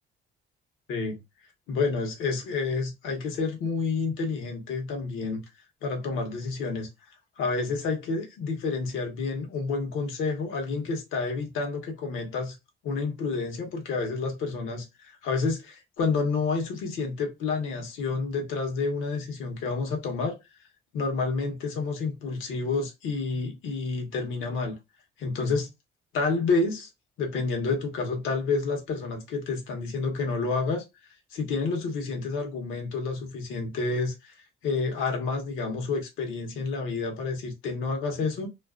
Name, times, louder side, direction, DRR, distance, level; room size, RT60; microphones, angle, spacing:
voice 1, 0.9-1.2 1.7-5.4 5.8-6.9 7.4-12.5 12.8-20.4 20.9-24.8 25.2-25.7 26.1-26.9 27.2-30.8 31.3-34.3 34.6-38.5, left 4 dB, 85° left, 0.9 m, -29 dB
2.5 x 2.3 x 2.3 m
cardioid pair, 90°, 20 cm